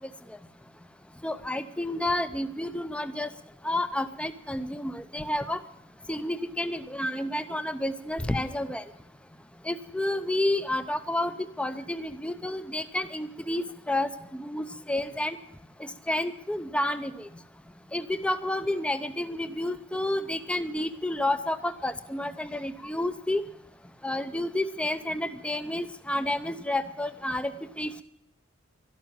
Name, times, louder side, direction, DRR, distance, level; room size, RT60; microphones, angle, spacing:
voice 1, 1.2-3.3 3.6-5.6 6.1-8.8 9.6-15.4 15.8-17.3 17.9-23.4 24.0-27.5 27.8-27.9, left 1 dB, 5° left, 11 dB, 0.6 m, -30 dB
12.5 x 12.0 x 9.1 m, 0.77 s
head